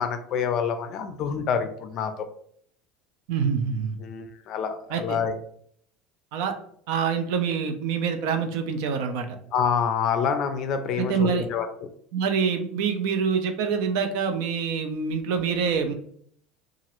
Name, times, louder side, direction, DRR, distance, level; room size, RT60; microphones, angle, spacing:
voice 1, 0.0-2.3 4.0-5.4 9.5-11.9, left 7 dB, 40° left, 8 dB, 0.4 m, -27 dB
voice 2, 3.3-4.0 4.9-5.2 6.3-6.5 6.9-9.3 11.0-11.5 12.1-15.9, right 6 dB, 70° right, 6 dB, 0.5 m, -26 dB
2.9 x 2.4 x 2.9 m, 0.63 s
cardioid pair, 155°, 0 cm